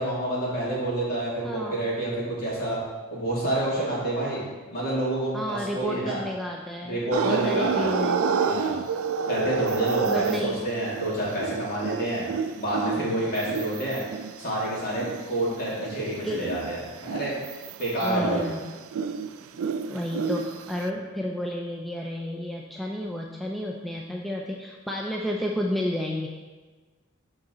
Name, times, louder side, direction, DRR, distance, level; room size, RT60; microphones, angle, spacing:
voice 1, 0.0-2.8 3.1-4.4 4.7-6.2 6.8-7.9 8.4-8.8 9.3-12.2 12.6-14.0 14.4-17.3 17.8-18.4, right 1 dB, 45° left, -6 dB, 2.5 m, -28 dB
voice 2, 1.4-1.8 5.3-8.2 10.0-10.6 16.2-16.5 18.0-18.6 19.9-26.3, equal, ahead, -1 dB, 0.4 m, -31 dB
sound 1, 7.1-15.3 15.8-20.9, right 5 dB, 70° right, 0.4 m, -29 dB
11.5 x 4.0 x 3.9 m, 1.3 s
head